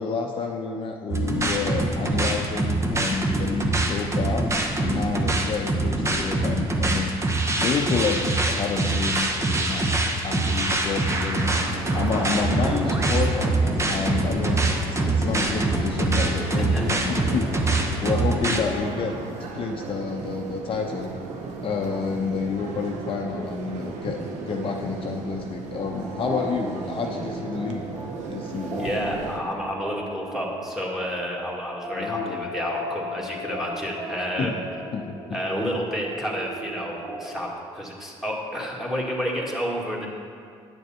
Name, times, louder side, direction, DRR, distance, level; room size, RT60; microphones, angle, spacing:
voice 1, 0.0-4.5 4.7-10.0 10.2-13.6 13.9-21.1 21.6-27.9 28.3-28.8 31.9-32.5 34.4-34.6 34.9-35.4, left 5 dB, 50° left, 2 dB, 0.7 m, -29 dB
sound 1, 1.1-18.6, right 2 dB, 25° right, 1.0 m, -24 dB
sound 2, 11.4-29.4, right 4 dB, 75° right, 0.9 m, -36 dB
voice 2, 16.3-17.0 28.8-34.6 35.3-40.1, equal, 5° right, -3 dB, 2.0 m, -30 dB
sound 3, 25.8-37.5, equal, 45° right, 1.5 m, -37 dB
10.0 x 6.7 x 4.3 m, 2.3 s
supercardioid pair, 80°, 12 cm